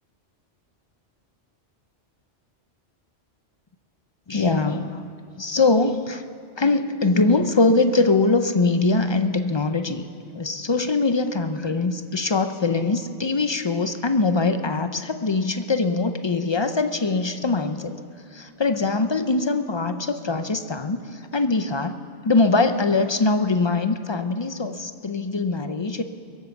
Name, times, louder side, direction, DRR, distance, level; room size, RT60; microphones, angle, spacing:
voice 1, 4.3-5.1 5.4-6.3 6.6-10.1 10.3-17.9 18.3-22.0 22.2-26.0, left 3 dB, 45° left, 9 dB, 0.3 m, -22 dB
22.5 x 8.4 x 7.1 m, 2.7 s
omnidirectional pair, 1.3 m